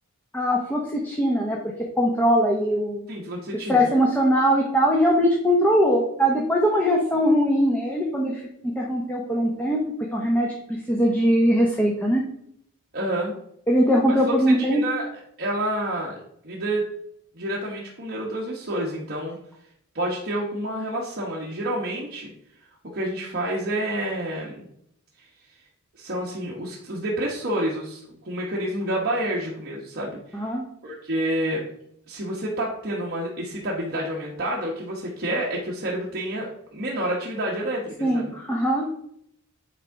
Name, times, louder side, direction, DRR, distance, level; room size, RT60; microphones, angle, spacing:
voice 1, 0.3-3.1 3.7-8.4 8.8-9.8 10.1-10.5 10.9-12.2 13.7-14.8 30.3-30.6 38.0-38.9, equal, 10° left, -1 dB, 0.8 m, -21 dB
voice 2, 3.1-3.9 12.9-13.3 14.3-15.1 15.4-16.9 17.3-19.4 19.9-22.3 22.9-24.7 25.9-30.4 30.8-31.6 32.1-38.3, right 1 dB, 45° right, -4 dB, 1.2 m, -29 dB
8.9 x 3.7 x 4.6 m, 0.72 s
head